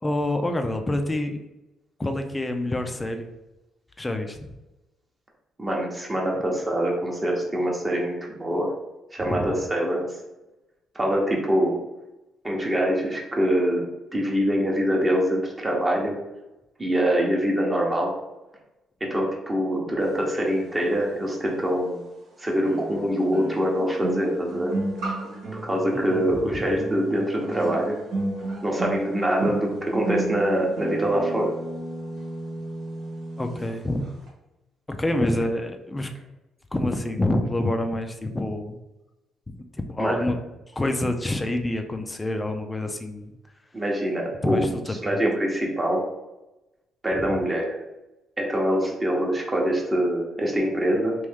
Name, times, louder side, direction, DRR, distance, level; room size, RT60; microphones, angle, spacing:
voice 1, 0.0-1.4 2.0-3.3 4.0-4.4 9.3-9.6 25.9-26.8 33.4-34.0 34.9-36.1 36.7-38.8 39.5-40.3 40.7-43.3 44.4-45.2 47.2-47.3, left 1 dB, 20° left, 6 dB, 0.4 m, -27 dB
voice 2, 5.6-8.7 9.1-10.1 10.9-11.8 12.4-16.1 16.8-18.1 19.0-22.0 22.4-24.7 25.5-27.9 28.6-31.5 40.0-40.2 43.7-44.6 45.0-46.0 47.0-47.8 48.4-51.2, equal, 20° right, -1 dB, 0.8 m, -24 dB
sound 1, 21.3-21.4 22.6-33.7 34.0-34.3, right 2 dB, 70° right, 1.1 m, -33 dB
3.1 x 2.6 x 3.5 m, 0.99 s
cardioid pair, 90°, 0 cm